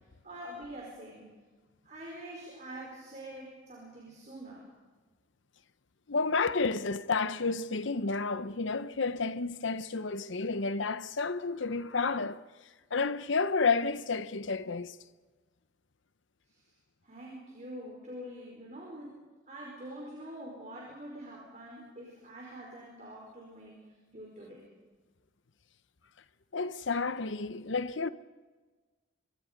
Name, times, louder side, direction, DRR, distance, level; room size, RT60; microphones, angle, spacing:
voice 1, 0.2-1.3 1.8-4.7 16.5-16.6 17.0-19.2 19.5-24.7, right 1 dB, 35° right, 4.8 m, -45 dB
voice 2, 6.1-12.4 12.9-15.0 26.5-28.1, left 4 dB, 70° left, 0.8 m, -31 dB
25.5 x 23.5 x 5.3 m
head